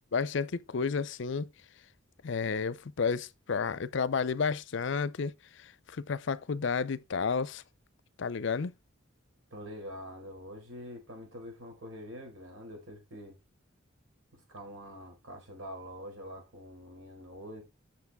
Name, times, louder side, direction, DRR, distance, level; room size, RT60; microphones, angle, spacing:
voice 1, 0.1-1.5 2.2-5.3 5.6-7.6 8.2-8.7, left 5 dB, 65° left, 0.5 m, -31 dB
voice 2, 9.5-13.4 14.3-17.6, equal, 85° right, 4.5 m, -45 dB
8.3 x 6.6 x 3.5 m
head